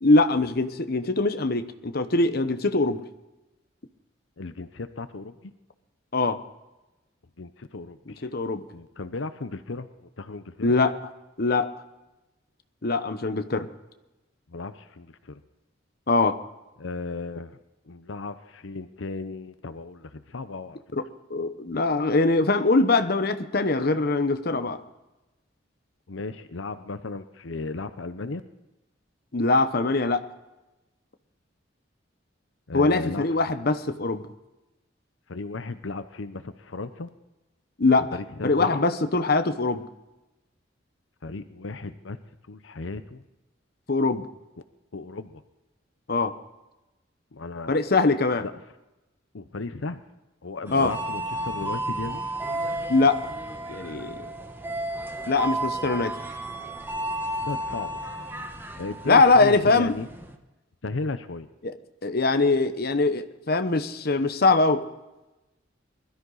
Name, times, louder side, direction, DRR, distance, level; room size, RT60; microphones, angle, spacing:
voice 1, 0.0-3.0 6.1-6.4 8.2-8.6 10.6-10.9 11.4-11.7 12.8-13.7 16.1-16.4 20.9-21.0 21.3-24.8 29.3-30.2 32.7-34.2 37.8-38.1 38.4-39.8 43.9-44.3 46.1-46.3 47.7-48.4 50.7-50.9 52.9-53.2 53.7-54.2 55.3-56.1 59.1-59.9 61.6-61.8 62.0-64.8, left 3 dB, 55° left, 9 dB, 1.0 m, -22 dB
voice 2, 4.4-5.5 7.4-8.3 8.7-10.7 14.5-15.4 16.8-17.6 17.9-20.8 26.1-28.4 32.7-33.2 35.3-37.1 38.1-38.8 41.2-42.2 42.5-43.2 44.9-45.4 47.3-47.8 48.4-48.5 49.3-50.0 50.4-52.2 57.4-58.0 58.8-60.1 60.8-61.5, left 3 dB, 85° left, 11 dB, 0.8 m, -35 dB
sound 1, 50.7-60.3, right 1 dB, 10° right, 1.2 m, -33 dB
21.5 x 13.0 x 4.0 m, 1.0 s
head